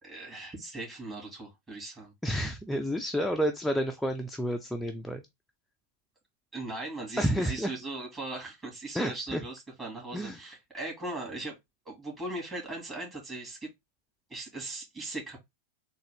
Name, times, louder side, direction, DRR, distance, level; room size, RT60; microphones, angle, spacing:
voice 1, 0.0-2.1 6.5-11.6 11.9-13.7 14.3-15.4, right 2 dB, 20° right, 2.2 m, -39 dB
voice 2, 2.2-5.2 7.2-7.7 8.9-9.4 10.1-10.4, equal, ahead, 0.4 m, -30 dB
3.8 x 2.5 x 3.4 m
figure-of-eight pair, 90°, 0 cm